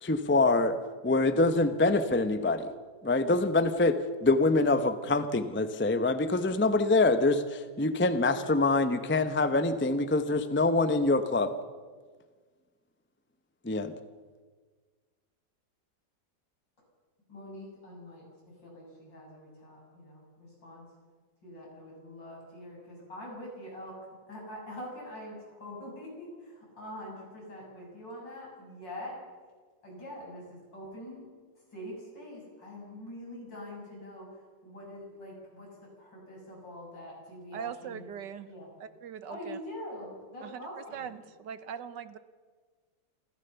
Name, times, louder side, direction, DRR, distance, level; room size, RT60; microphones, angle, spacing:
voice 1, 0.0-0.8 1.0-2.7 3.0-11.5 13.6-13.9, left 2 dB, 10° left, 10 dB, 0.6 m, -25 dB
voice 2, 17.3-20.8 21.4-24.0 24.3-29.2 29.8-31.3 31.7-34.3 34.6-38.0 38.5-38.7 39.3-41.1, left 1 dB, 75° left, -3 dB, 8.6 m, -44 dB
voice 3, 37.5-38.5 38.8-39.6 40.4-40.7 40.9-42.2, right 8 dB, 70° right, 13 dB, 1.5 m, -41 dB
28.5 x 14.0 x 7.0 m, 1.5 s
omnidirectional pair, 2.0 m